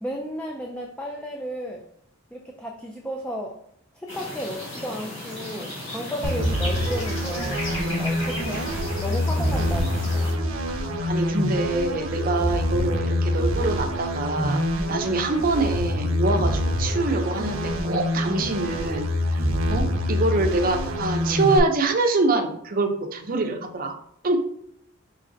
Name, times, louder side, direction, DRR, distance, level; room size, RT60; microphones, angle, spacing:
voice 1, 0.0-1.9 2.3-3.6 3.9-7.6 8.0-8.7 9.0-10.4, equal, 5° left, 0 dB, 0.3 m, -33 dB
sound 1, 4.1-10.3, left 1 dB, 65° left, 1.7 m, -35 dB
sound 2, 6.2-21.6, left 1 dB, 85° right, 0.7 m, -25 dB
voice 2, 10.8-23.9 24.2-24.4, right 2 dB, 45° right, 5 dB, 0.5 m, -25 dB
4.9 x 3.2 x 2.6 m, 0.68 s
head